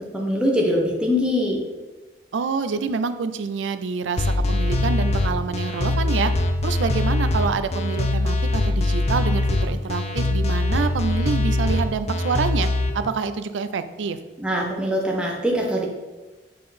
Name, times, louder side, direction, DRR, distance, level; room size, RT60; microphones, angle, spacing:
voice 1, 0.1-1.6 14.4-15.9, equal, 5° right, -2 dB, 1.0 m, -22 dB
voice 2, 2.3-6.3 6.6-12.7 12.9-14.2, right 5 dB, 80° right, 11 dB, 0.4 m, -27 dB
sound 1, 4.2-12.9, left 2 dB, 35° left, 0.5 m, -22 dB
6.5 x 3.8 x 4.2 m, 1.2 s
head